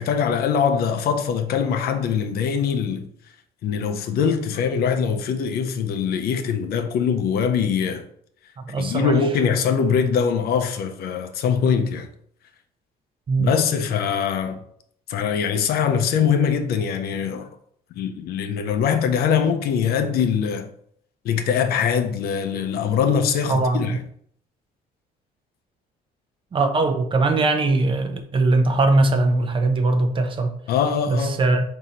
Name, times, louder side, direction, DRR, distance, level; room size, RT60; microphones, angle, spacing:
voice 1, 0.0-3.1 3.6-8.1 8.8-12.1 13.4-14.6 15.1-17.5 18.0-20.7 21.2-24.0 30.7-31.4, left 7 dB, 65° left, 0.5 m, -22 dB
voice 2, 8.6-9.2 13.3-13.5 23.5-24.0 26.5-30.5 31.1-31.6, right 2 dB, 30° right, 0.6 m, -20 dB
3.7 x 2.8 x 4.2 m
cardioid pair, 110°, 17 cm